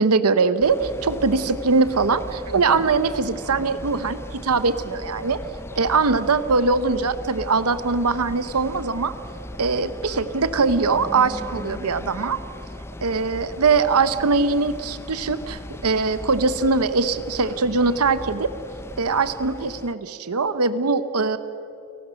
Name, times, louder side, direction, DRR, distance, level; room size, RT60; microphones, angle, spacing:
voice 1, 0.0-5.4 5.8-9.1 9.6-12.4 13.0-18.5 19.0-21.4, right 4 dB, 85° right, 12 dB, 0.8 m, -21 dB
sound 1, 0.6-19.9, left 1 dB, 10° left, 0.5 m, -38 dB
29.5 x 18.5 x 6.4 m, 2.9 s
head